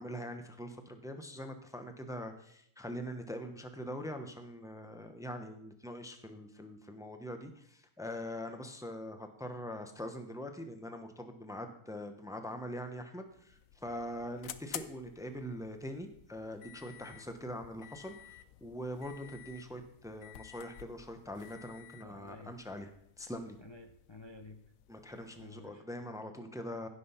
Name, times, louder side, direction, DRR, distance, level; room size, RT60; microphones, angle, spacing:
voice 1, 0.0-22.9 23.2-23.6 24.9-26.9, equal, 5° right, 7 dB, 0.8 m, -43 dB
sound 1, 13.2-25.7, left 11 dB, 70° left, 1.0 m, -52 dB
voice 2, 21.9-22.6 23.6-24.6 25.2-25.9 26.4-26.7, left 2 dB, 30° left, 5 dB, 0.5 m, -52 dB
16.0 x 6.3 x 5.6 m, 0.71 s
omnidirectional pair, 1.6 m